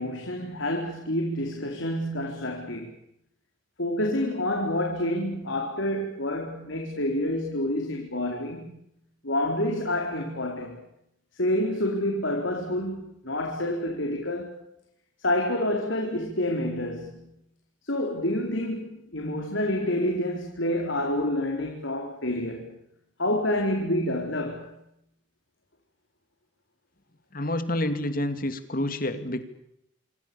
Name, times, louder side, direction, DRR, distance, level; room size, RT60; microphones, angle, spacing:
voice 1, 0.0-3.0 3.8-8.8 9.2-10.8 11.3-14.6 15.2-17.3 17.8-22.8 23.2-24.8, left 1 dB, 75° left, 4.4 m, -28 dB
voice 2, 27.3-29.4, left 1 dB, 45° left, 2.7 m, -28 dB
27.0 x 25.5 x 7.1 m
head